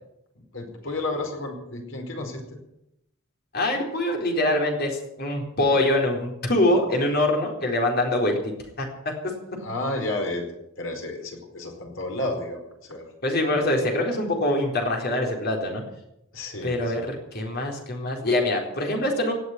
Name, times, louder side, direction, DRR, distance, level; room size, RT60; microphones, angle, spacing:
voice 1, 0.4-2.6 9.6-10.5 10.8-13.1 16.3-16.9, left 2 dB, 80° left, 2 dB, 4.7 m, -32 dB
voice 2, 3.5-8.9 13.2-15.8 16.6-19.3, left 1 dB, 55° left, 1 dB, 4.2 m, -24 dB
17.5 x 8.1 x 9.8 m, 0.84 s
head